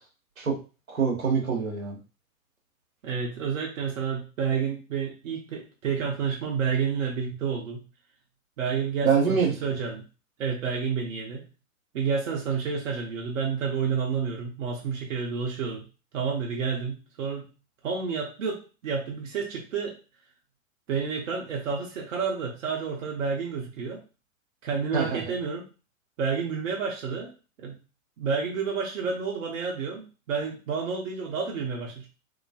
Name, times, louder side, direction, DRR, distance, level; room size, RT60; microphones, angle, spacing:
voice 1, 0.9-2.0 9.0-9.5 24.9-25.2, right 6 dB, 90° right, -1 dB, 1.2 m, -24 dB
voice 2, 3.0-7.8 8.6-10.0 10.4-11.4 11.9-15.8 16.1-17.5 17.8-20.0 20.9-24.0 24.6-25.7 26.2-27.3 27.6-27.7 28.2-32.1, right 6 dB, 70° right, -1 dB, 1.0 m, -30 dB
3.0 x 2.9 x 2.7 m, 0.33 s
figure-of-eight pair, 100°, 40 cm